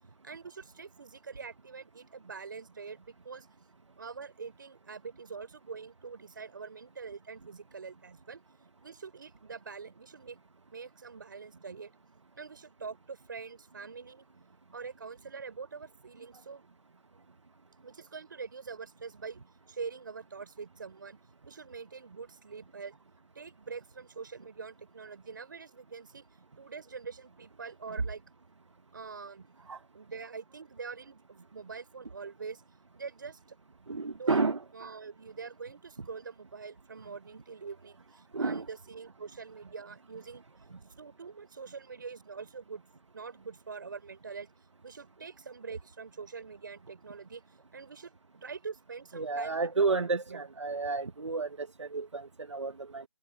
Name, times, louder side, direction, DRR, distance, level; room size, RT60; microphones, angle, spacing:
voice 1, 0.2-3.5 4.0-8.4 8.8-10.4 10.7-11.9 12.4-14.3 14.7-16.7 17.8-19.4 19.7-22.9 23.3-26.2 26.6-28.2 28.9-29.5 29.9-32.6 32.9-33.4 34.1-34.5 34.7-40.4 41.0-42.8 43.1-44.5 44.8-50.5, right 5 dB, 40° right, 5.5 m, -44 dB
voice 2, 33.9-34.6 38.3-38.7 49.1-53.0, right 4 dB, 60° right, 1.4 m, -31 dB
figure-of-eight pair, 170°, 17 cm